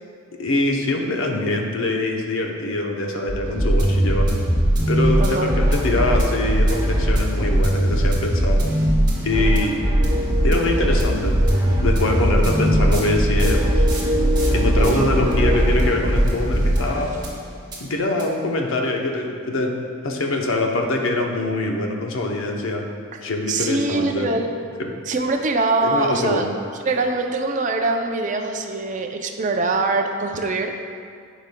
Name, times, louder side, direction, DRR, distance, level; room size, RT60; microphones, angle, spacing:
voice 1, 0.4-4.4 4.9-8.6 9.2-9.9 10.4-11.4 11.8-13.8 14.5-17.1 17.8-19.8 20.0-22.8 23.2-24.4 25.8-26.5, left 2 dB, 70° left, 1 dB, 0.7 m, -23 dB
sound 1, 3.3-17.4 17.7-17.8 18.2-18.3, right 1 dB, 20° right, 1.2 m, -20 dB
voice 2, 5.2-5.6 14.8-15.2 23.1-23.2 23.5-24.5 25.1-26.5 26.8-30.8, right 3 dB, 35° right, 4 dB, 0.4 m, -23 dB
sound 2, 10.0-16.0, equal, 90° right, 0.8 m, -26 dB
11.5 x 5.0 x 2.2 m, 2.3 s
head